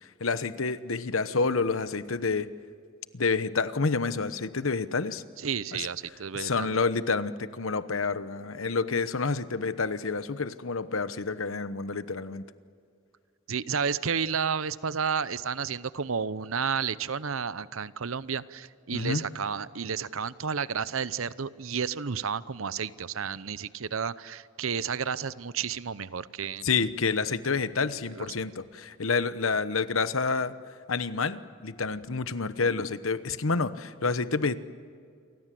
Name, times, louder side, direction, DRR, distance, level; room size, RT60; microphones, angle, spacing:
voice 1, 0.0-2.5 3.1-5.2 5.7-5.9 6.3-12.4 18.9-19.2 26.6-30.5 30.9-34.6, left 4 dB, 80° left, 13 dB, 1.0 m, -28 dB
voice 2, 5.4-6.7 13.5-26.7 28.1-28.3, right 6 dB, 80° right, 16 dB, 0.8 m, -31 dB
28.5 x 24.5 x 7.7 m, 2.3 s
head